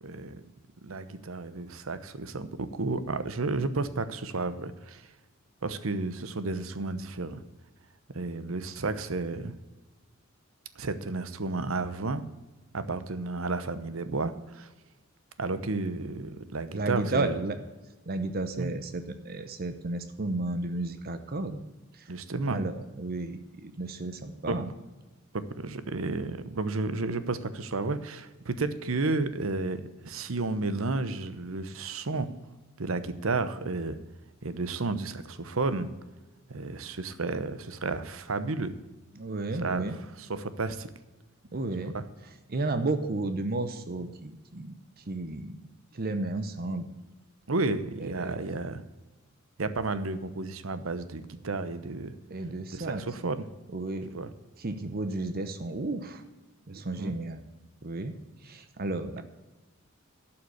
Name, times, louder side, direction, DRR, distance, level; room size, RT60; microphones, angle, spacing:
voice 1, 0.0-0.4 0.8-5.0 5.6-7.4 8.1-9.5 10.8-12.2 12.7-14.7 15.4-17.3 18.6-18.7 22.1-22.6 24.5-24.6 25.3-32.3 32.8-34.0 34.4-35.9 36.5-38.7 39.6-40.9 41.8-42.0 47.5-48.8 49.6-52.1 52.7-53.5 54.1-54.3 57.0-57.2, right 3 dB, 75° right, 12 dB, 0.9 m, -32 dB
voice 2, 16.7-17.6 18.1-21.6 21.9-22.1 22.5-24.7 39.1-40.0 41.5-42.0 42.5-45.6 45.9-46.8 48.0-48.5 52.3-53.0 53.7-54.1 54.6-56.2 56.7-57.4 57.8-58.2 58.4-59.2, right 2 dB, 45° right, 9 dB, 0.8 m, -33 dB
11.5 x 5.9 x 7.9 m, 1.1 s
head